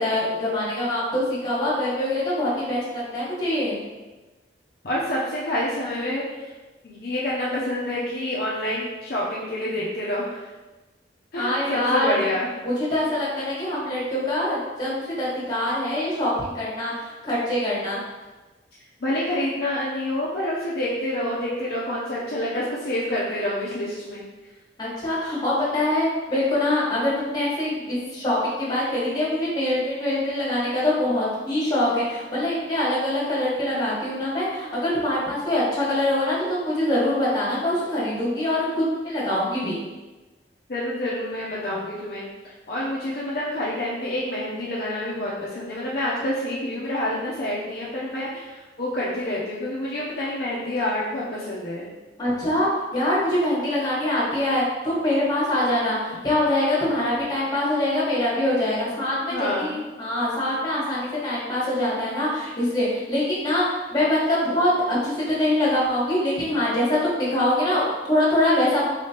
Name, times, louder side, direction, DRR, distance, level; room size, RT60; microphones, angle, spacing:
voice 1, 0.0-3.8 11.4-12.1 12.6-18.0 24.8-39.8 52.2-68.8, left 1 dB, 20° left, -7 dB, 1.4 m, -24 dB
voice 2, 4.8-6.5 6.8-10.5 11.3-12.5 19.0-24.2 40.7-42.3 42.7-51.9 59.3-59.8, left 1 dB, 55° left, -6 dB, 0.6 m, -28 dB
4.0 x 3.1 x 2.9 m, 1.2 s
head